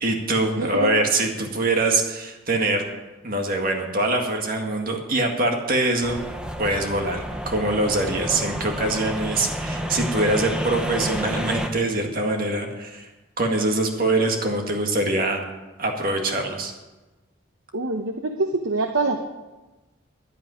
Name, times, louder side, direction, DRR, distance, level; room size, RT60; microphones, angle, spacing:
voice 1, 0.0-2.8 3.2-6.2 6.6-13.1 13.4-15.4 15.8-16.7, right 2 dB, 45° right, 2 dB, 2.0 m, -23 dB
voice 2, 0.6-0.9 17.7-19.2, right 3 dB, 80° right, 5 dB, 0.9 m, -25 dB
sound 1, 6.0-11.7, equal, 5° right, 1.0 m, -30 dB
11.0 x 8.6 x 9.9 m, 1.1 s
head